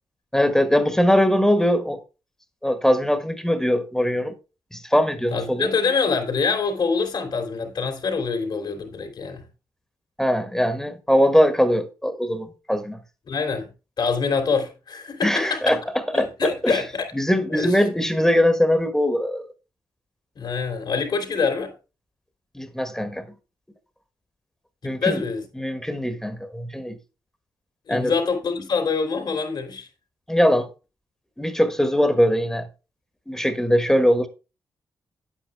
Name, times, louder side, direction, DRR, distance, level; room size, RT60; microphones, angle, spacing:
voice 1, 0.3-2.0 2.6-4.3 4.7-5.7 10.2-13.0 15.2-15.8 16.1-16.8 17.1-19.4 22.5-23.3 24.8-25.2 25.6-27.0 27.9-28.1 30.3-30.7 31.4-32.7 33.3-34.3, equal, 5° left, 1.4 m, -21 dB
voice 2, 5.3-9.5 13.3-13.7 14.0-15.8 16.1-17.1 17.6-17.8 20.4-21.7 24.8-25.4 27.9-29.9, left 5 dB, 65° left, 3.0 m, -25 dB
9.6 x 8.4 x 3.5 m
cardioid pair, 70°, 8 cm